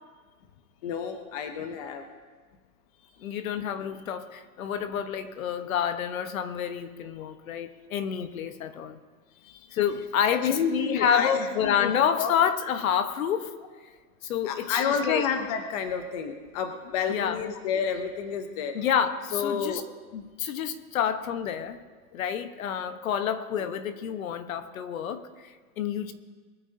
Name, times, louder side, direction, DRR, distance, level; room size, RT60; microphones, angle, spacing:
voice 1, 0.8-2.0 3.0-3.1 9.4-9.8 10.4-11.9 12.2-12.3 14.4-18.8 19.3-19.8 23.6-23.7, left 6 dB, 25° left, 6 dB, 0.7 m, -30 dB
voice 2, 3.2-9.0 9.7-13.5 14.2-15.2 17.1-17.4 18.7-19.8 20.1-21.8 22.1-26.1, left 8 dB, 65° left, 9 dB, 1.3 m, -28 dB
22.0 x 13.5 x 2.8 m, 1.4 s
supercardioid pair, 170°, 44 cm